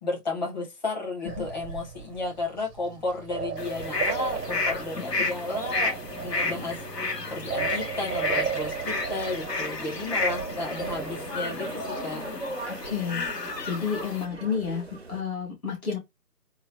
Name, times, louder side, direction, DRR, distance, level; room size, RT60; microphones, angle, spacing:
voice 1, 0.0-6.0 6.2-6.8 7.3-12.2, left 2 dB, 30° left, 1.4 m, -33 dB
sound 1, 1.3-11.9, right 7 dB, 90° right, 0.6 m, -36 dB
sound 2, 3.6-14.2, left 3 dB, 80° left, 1.3 m, -32 dB
sound 3, 3.6-15.2, right 2 dB, 45° right, 0.4 m, -43 dB
voice 2, 12.7-13.3 13.6-16.0, left 6 dB, 60° left, 2.2 m, -31 dB
3.9 x 2.2 x 2.3 m
figure-of-eight pair, 155°, 48 cm